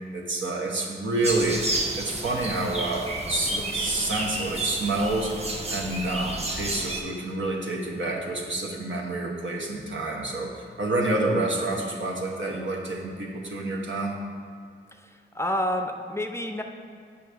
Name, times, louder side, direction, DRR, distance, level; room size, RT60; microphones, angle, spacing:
voice 1, 0.1-1.6 2.0-5.4 5.7-14.2, right 2 dB, 75° right, -1 dB, 1.0 m, -28 dB
sound 1, 1.2-7.0, right 1 dB, 30° right, 0.9 m, -31 dB
voice 2, 15.3-16.6, left 1 dB, 15° left, 4 dB, 0.5 m, -28 dB
7.8 x 5.4 x 3.4 m, 2.2 s
cardioid pair, 65°, 20 cm